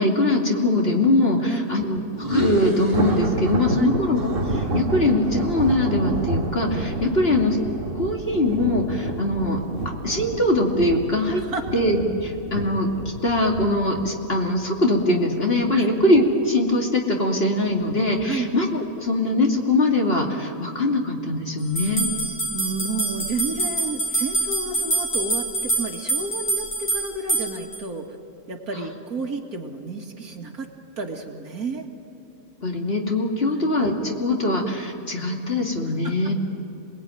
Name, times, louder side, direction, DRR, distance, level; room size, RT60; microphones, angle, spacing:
voice 1, 0.0-7.6 8.0-9.6 10.0-11.4 11.7-12.9 13.2-22.1 32.6-36.3, left 2 dB, 40° left, 0 dB, 2.8 m, -22 dB
voice 2, 1.4-1.7 3.7-4.0 7.2-7.4 11.4-11.7 15.7-16.0 18.2-18.5 22.4-28.1 28.5-30.7 31.0-31.9 33.5-33.7 35.8-36.3, right 3 dB, 80° right, 2 dB, 2.7 m, -31 dB
sound 1, 2.1-3.9 4.2-6.4, equal, 15° right, 5.8 m, -31 dB
Thunder, 2.3-15.6 16.0-16.3 16.7-16.8 17.7-18.2, right 2 dB, 40° right, 1.6 m, -30 dB
sound 2, 21.8-27.8, right 2 dB, 5° left, 6.1 m, -26 dB
28.0 x 19.5 x 9.2 m, 2.8 s
omnidirectional pair, 1.6 m